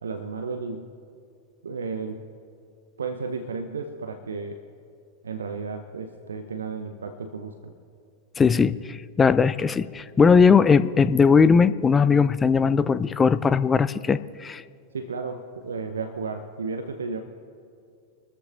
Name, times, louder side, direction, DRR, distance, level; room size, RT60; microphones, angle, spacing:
voice 1, 0.0-0.9 1.6-2.2 3.0-4.6 5.2-7.7 14.9-17.2, right 4 dB, 70° right, 7 dB, 0.8 m, -33 dB
voice 2, 8.4-14.6, left 5 dB, 15° left, 15 dB, 0.4 m, -19 dB
26.0 x 13.5 x 2.6 m, 2.3 s
figure-of-eight pair, 90°, 0 cm